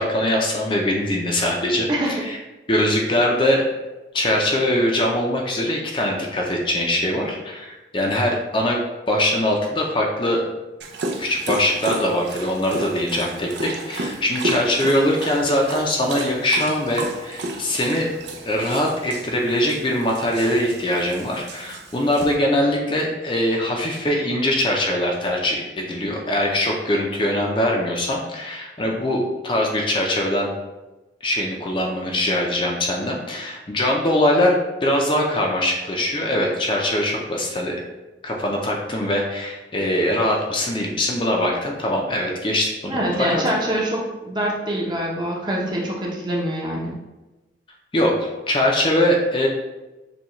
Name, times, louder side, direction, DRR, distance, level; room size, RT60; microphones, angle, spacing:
voice 1, 0.0-2.4 2.7-3.6 4.1-8.8 9.1-10.4 11.2-18.1 18.4-30.5 31.2-34.6 34.8-37.8 38.2-43.4 47.9-49.5, left 1 dB, 30° left, -1 dB, 0.5 m, -22 dB
voice 2, 1.9-2.2 42.9-47.0, right 1 dB, 25° right, -3 dB, 0.8 m, -24 dB
Dog, 10.8-22.4, right 2 dB, 75° right, 0.6 m, -32 dB
6.9 x 2.4 x 3.0 m, 1.1 s
head